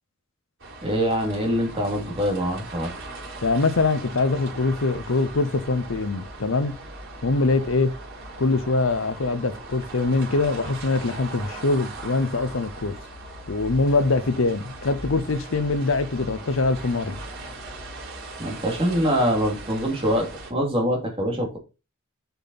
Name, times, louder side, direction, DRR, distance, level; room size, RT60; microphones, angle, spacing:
sound 1, 0.6-20.5, right 2 dB, 60° right, 3.9 m, -39 dB
voice 1, 0.8-2.9 18.4-21.6, equal, 25° right, 2.4 m, -24 dB
voice 2, 3.4-6.8 7.2-8.0 8.4-13.0 13.5-17.2, left 3 dB, 60° left, 0.7 m, -23 dB
6.9 x 5.9 x 4.0 m
head